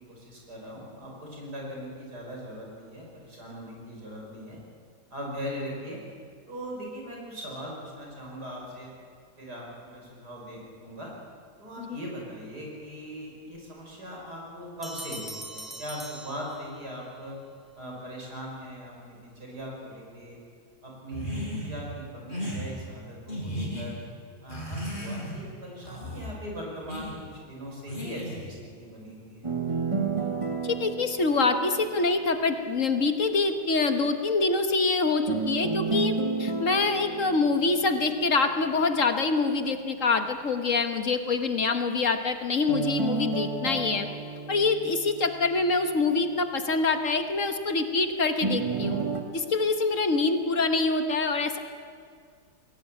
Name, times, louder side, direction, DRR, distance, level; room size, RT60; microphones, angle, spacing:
voice 1, 0.0-4.6 5.1-6.0 6.5-8.9 9.4-11.1 11.6-17.3 17.7-20.4 20.8-24.0 24.4-29.5, equal, 70° right, -1 dB, 6.3 m, -40 dB
Bell, 14.8-17.1, right 1 dB, ahead, 2.5 m, -41 dB
sound 1, 21.1-21.7 22.3-22.6 23.3-23.9 24.5-25.4 25.8-26.3 26.9-27.1 27.9-28.5, equal, 30° left, 6.6 m, -34 dB
sound 2, 29.4-32.5 35.3-38.5 42.7-45.8 48.4-49.2, right 4 dB, 20° right, 1.9 m, -31 dB
voice 2, 30.6-36.1 36.4-44.1 44.5-49.0 49.3-51.6, left 3 dB, 50° left, 7 dB, 1.4 m, -25 dB
21.0 x 17.5 x 9.1 m, 2.1 s
omnidirectional pair, 1.8 m